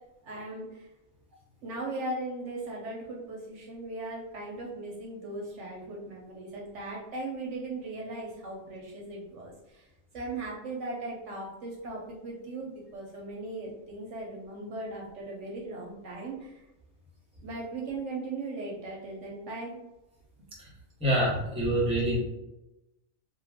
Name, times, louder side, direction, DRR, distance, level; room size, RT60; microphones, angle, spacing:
voice 1, 0.2-0.9 1.6-9.9 10.1-16.6 17.4-19.8 21.4-21.8, right 2 dB, 65° right, -2 dB, 0.9 m, -38 dB
voice 2, 21.0-22.2, right 1 dB, 5° right, -5 dB, 0.9 m, -26 dB
2.5 x 2.3 x 3.4 m, 0.96 s
omnidirectional pair, 1.4 m